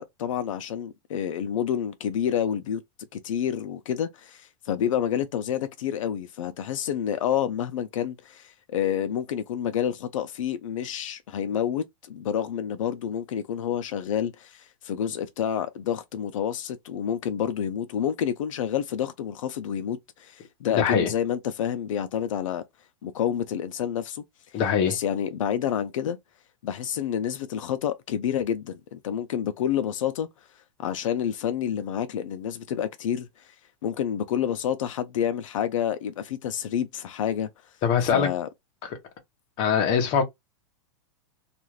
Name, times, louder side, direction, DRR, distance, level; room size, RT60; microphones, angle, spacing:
voice 1, 0.0-2.8 3.1-22.6 23.0-24.2 24.5-24.6 24.9-26.2 26.6-30.3 30.8-33.5 33.8-37.5 38.1-38.5, left 9 dB, 80° left, 0.5 m, -29 dB
voice 2, 20.7-21.1 24.5-24.9 37.8-38.3 39.6-40.2, left 7 dB, 35° left, 0.9 m, -22 dB
2.5 x 2.3 x 3.1 m
supercardioid pair, 155°, 16 cm